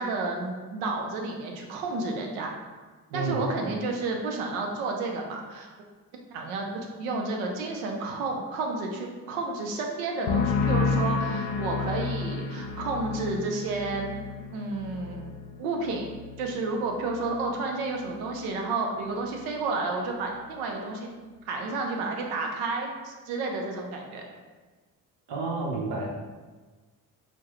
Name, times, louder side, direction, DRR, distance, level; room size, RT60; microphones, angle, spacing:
voice 1, 0.0-2.5 3.1-5.7 6.3-14.1 14.5-15.3 15.6-21.1 21.5-24.2, right 3 dB, 90° right, 2 dB, 0.6 m, -31 dB
voice 2, 3.1-3.5 25.3-26.1, right 3 dB, 70° right, -1 dB, 1.0 m, -30 dB
sound 1, 10.3-17.7 18.0-18.5, left 4 dB, 75° left, 0.6 m, -31 dB
4.5 x 2.2 x 3.0 m, 1.3 s
hypercardioid pair, 55°, 41 cm